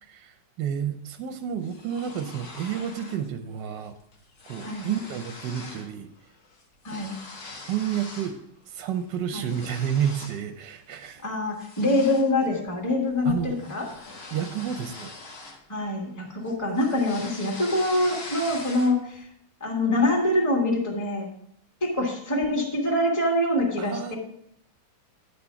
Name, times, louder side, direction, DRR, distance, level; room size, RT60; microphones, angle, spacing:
voice 1, 0.0-3.9 4.5-6.1 7.7-8.4 8.7-11.2 13.2-13.6 14.3-15.1 23.8-24.2, right 9 dB, 70° right, 8 dB, 1.1 m, -30 dB
sound 1, 1.6-3.3 3.6-3.9 4.1-5.9 6.2-8.4 8.8-10.5 10.9-11.1 11.6-16.1 16.4-19.2, left 3 dB, 45° left, 1.2 m, -43 dB
voice 2, 11.2-13.9 15.7-19.3 19.6-21.3 21.8-24.2, left 1 dB, 10° left, -1 dB, 1.5 m, -25 dB
9.8 x 4.4 x 5.6 m, 0.71 s
omnidirectional pair, 2.1 m